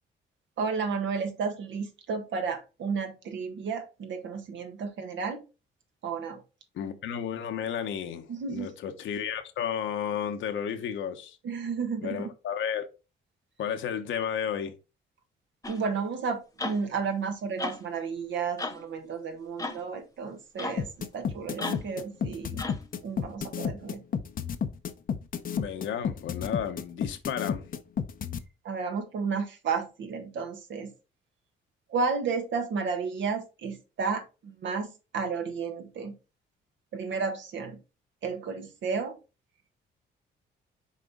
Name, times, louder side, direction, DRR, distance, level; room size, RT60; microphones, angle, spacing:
voice 1, 0.6-5.4 6.0-6.4 8.3-8.7 11.4-12.3 15.7-22.7 23.0-24.0 28.6-30.9 31.9-36.1 36.9-37.8 38.2-39.2, right 5 dB, 70° right, 1.6 m, -32 dB
voice 2, 6.7-11.4 12.0-12.9 13.6-14.8 25.5-27.7, left 8 dB, 75° left, 1.1 m, -32 dB
sound 1, 15.6-15.8 16.6-16.8 17.6-17.8 18.6-18.8 19.6-19.8 20.6-20.8 21.6-21.9 22.6-22.9, left 2 dB, 15° left, 1.0 m, -35 dB
sound 2, 20.8-28.4, left 7 dB, 45° left, 0.7 m, -31 dB
6.7 x 4.2 x 3.7 m
cardioid pair, 90°, 20 cm